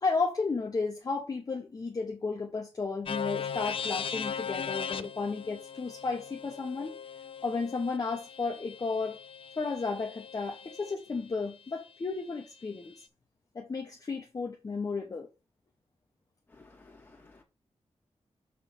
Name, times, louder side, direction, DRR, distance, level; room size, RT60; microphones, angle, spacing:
voice 1, 0.0-7.0 7.4-9.2 9.6-13.1 13.5-15.3, left 4 dB, 35° left, 0.9 m, -33 dB
sound 1, 3.1-10.9, left 7 dB, 55° left, 0.4 m, -39 dB
voice 2, 16.5-17.4, left 3 dB, 15° left, 2.1 m, -56 dB
6.8 x 3.2 x 5.8 m
wide cardioid pair, 175°, 11 cm